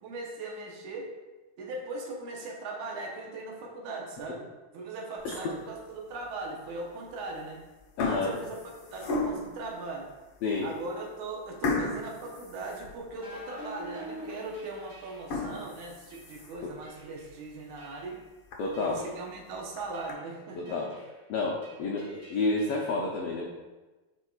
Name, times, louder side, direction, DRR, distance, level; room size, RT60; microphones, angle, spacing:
voice 1, 0.0-1.1 1.6-7.6 8.0-8.6 8.9-10.1 10.6-18.2 18.8-20.8, right 2 dB, 75° right, -1 dB, 2.3 m, -39 dB
sound 1, 5.2-5.7 6.3-6.4 7.2-7.5 7.8-9.6 10.2-10.3 10.7-10.8 11.6-13.4 13.8-13.9 14.4-14.5 15.1-16.7 17.2-17.3 17.7-17.8 18.1-18.2 18.5-18.6 19.5-20.1, left 3 dB, 65° left, 1.3 m, -34 dB
voice 2, 8.0-8.4 10.4-10.7 18.6-19.0 20.5-20.9 21.3-23.5, left 3 dB, 85° left, -3 dB, 1.3 m, -30 dB
sound 2, 13.2-15.5 16.1-16.3 16.8-17.3 17.8-18.2 18.7-19.3 19.9-20.2 20.7-21.2 21.6-22.9, right 1 dB, 50° right, 0.8 m, -47 dB
9.3 x 4.5 x 2.4 m, 1.2 s
omnidirectional pair, 3.5 m